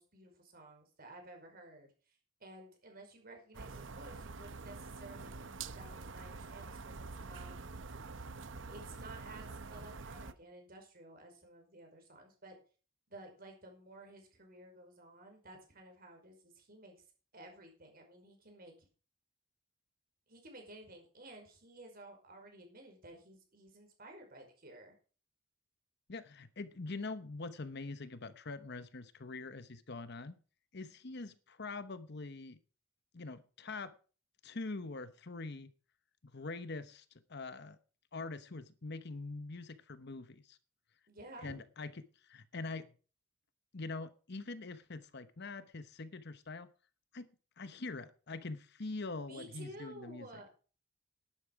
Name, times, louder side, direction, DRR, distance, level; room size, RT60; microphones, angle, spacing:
voice 1, 0.0-1.9 2.4-7.6 8.7-12.5 13.1-17.0 17.3-18.7 20.3-25.0 41.1-41.6 49.3-50.5, right 1 dB, 50° right, 5.1 m, -53 dB
sound 1, 3.5-10.3, right 4 dB, 65° right, 0.9 m, -46 dB
voice 2, 26.1-30.4 30.7-32.6 33.1-33.9 34.4-35.7 36.3-37.0 37.3-37.8 38.1-40.6 41.4-41.9 42.2-42.9 43.7-46.7 47.1-47.3 47.6-50.4, left 3 dB, 55° left, 1.0 m, -44 dB
12.0 x 11.0 x 4.8 m
head